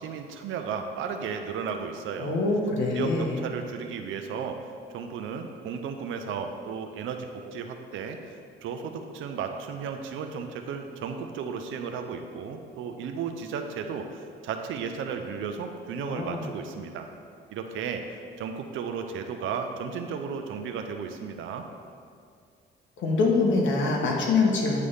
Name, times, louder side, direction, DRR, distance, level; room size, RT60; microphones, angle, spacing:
voice 1, 0.0-2.4 2.9-4.6 4.9-8.4 8.6-17.1 17.5-18.0 18.4-21.7, right 6 dB, 80° right, 5 dB, 0.6 m, -34 dB
voice 2, 2.2-3.4 16.0-16.4 23.0-24.8, left 3 dB, 75° left, -1 dB, 1.2 m, -24 dB
9.4 x 3.3 x 5.5 m, 2.3 s
cardioid pair, 90°, 20 cm